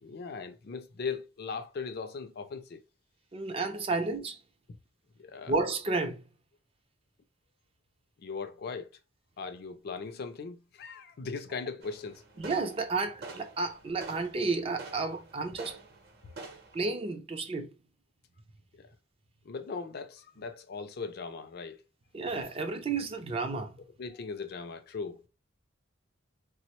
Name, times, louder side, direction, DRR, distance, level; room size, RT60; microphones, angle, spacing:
voice 1, 0.0-2.8 5.2-5.5 8.2-8.9 9.4-12.2 18.7-18.9 19.4-21.8 24.0-25.3, left 5 dB, 50° left, 0.4 m, -39 dB
voice 2, 3.3-4.4 5.5-6.2 12.4-15.8 16.7-17.7 22.1-23.7, right 3 dB, 30° right, 0.4 m, -32 dB
sound 1, 11.8-16.9, right 3 dB, 55° right, 0.8 m, -48 dB
3.4 x 2.0 x 2.9 m
head